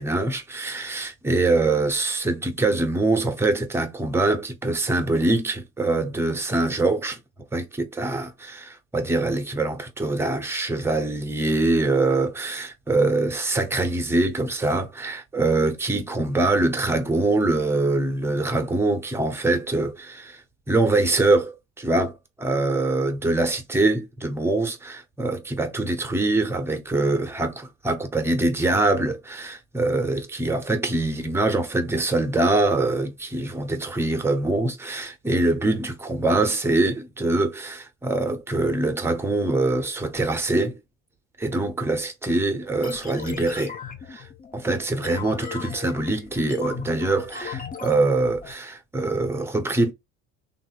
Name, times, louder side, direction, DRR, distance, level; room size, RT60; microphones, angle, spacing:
voice 1, 0.0-7.2 7.5-20.4 20.7-40.8 41.4-43.7 44.1-44.3 44.5-49.9, right 2 dB, 5° right, 0.8 m, -24 dB
sound 1, 42.8-48.5, left 7 dB, 25° left, 0.7 m, -37 dB
3.0 x 2.5 x 2.8 m
hypercardioid pair, 75°, 34 cm